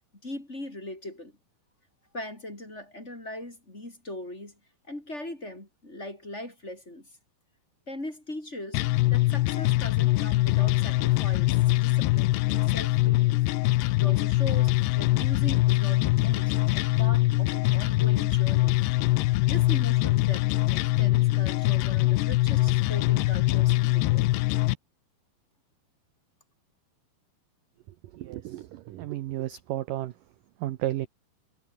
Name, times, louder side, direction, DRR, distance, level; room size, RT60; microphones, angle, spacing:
voice 1, 0.2-1.3 2.1-4.5 4.9-7.1 7.9-8.8 9.1-11.6 11.8-13.4 13.9-18.8 19.4-24.3, left 1 dB, 15° left, 4.3 m, -40 dB
sound 1, 8.7-24.7, left 19 dB, 85° left, 2.9 m, -23 dB
voice 2, 28.1-30.1 30.6-31.1, right 14 dB, 70° right, 2.2 m, -32 dB
omnidirectional pair, 4.8 m